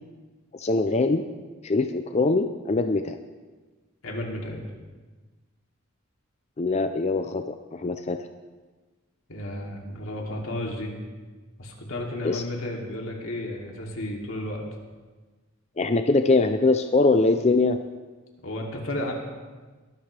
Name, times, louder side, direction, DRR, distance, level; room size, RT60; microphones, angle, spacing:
voice 1, 0.5-1.2 1.6-3.2 6.6-8.2 12.2-12.4 15.8-17.8, left 3 dB, 30° left, 7 dB, 0.5 m, -22 dB
voice 2, 4.0-4.6 9.3-10.9 11.6-14.6 18.4-19.1, left 1 dB, 85° left, -1 dB, 2.9 m, -33 dB
22.5 x 12.5 x 3.4 m, 1.3 s
head